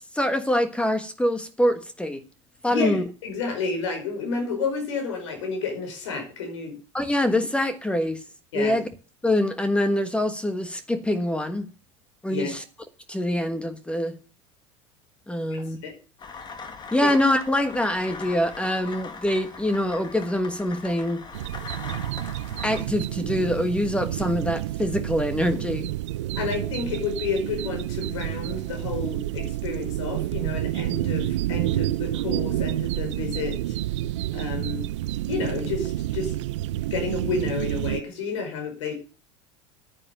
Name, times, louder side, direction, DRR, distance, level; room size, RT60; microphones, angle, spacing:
voice 1, 0.0-2.2 2.6-3.0 6.9-8.2 8.5-8.9 9.2-11.7 12.2-12.6 13.1-14.1 15.3-15.8 16.9-21.2 22.6-25.9, left 1 dB, 5° left, 10 dB, 1.3 m, -24 dB
voice 2, 2.7-6.7 8.5-8.8 12.3-12.6 15.5-16.0 17.0-17.1 26.4-33.8 34.3-34.8 35.3-36.3 36.9-38.9, left 4 dB, 85° left, 5 dB, 4.9 m, -30 dB
sound 1, 16.2-22.9, left 5 dB, 30° left, 1.9 m, -40 dB
sound 2, 21.3-38.0, right 15 dB, 90° right, 0.5 m, -29 dB
9.7 x 9.0 x 6.7 m, 0.35 s
supercardioid pair, 110°, 15 cm